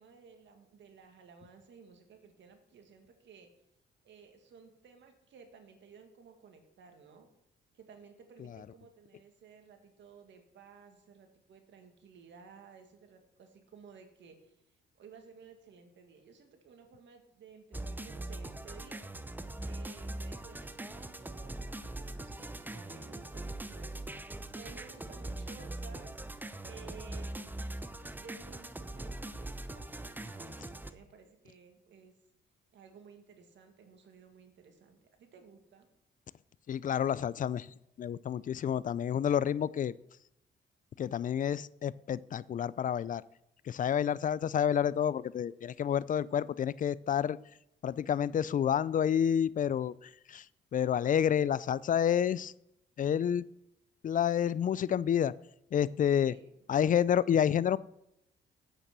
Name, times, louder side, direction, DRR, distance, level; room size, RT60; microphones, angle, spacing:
voice 1, 0.0-3.5 4.0-7.3 7.7-19.1 19.6-24.1 24.5-26.1 26.6-27.7 28.1-32.2 32.7-35.9 56.2-56.8, right 5 dB, 70° right, 5 dB, 2.0 m, -56 dB
sound 1, 17.7-30.9, right 1 dB, 10° right, 0.7 m, -41 dB
voice 2, 36.7-40.0 41.0-43.2 43.7-47.4 47.8-50.5 50.7-52.5 53.0-53.5 54.0-55.3 55.7-56.3 56.7-57.8, left 9 dB, 40° left, 20 dB, 0.4 m, -29 dB
8.7 x 8.2 x 6.1 m, 0.82 s
cardioid pair, 90°, 20 cm